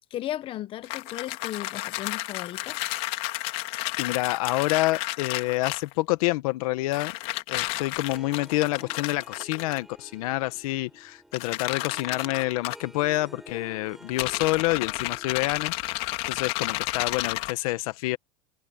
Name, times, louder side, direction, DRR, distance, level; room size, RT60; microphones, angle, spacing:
voice 1, 0.1-2.8, left 13 dB, 25° left, 0.8 m, -35 dB
sound 1, 0.8-5.9 6.9-9.8 11.3-12.8 14.1-17.5, left 21 dB, 50° left, 2.6 m, -32 dB
voice 2, 4.0-7.2 7.5-18.2, left 19 dB, 65° left, 1.2 m, -28 dB
Harp, 7.9-15.8, right 1 dB, ahead, 4.8 m, -50 dB
supercardioid pair, 160°, 20 cm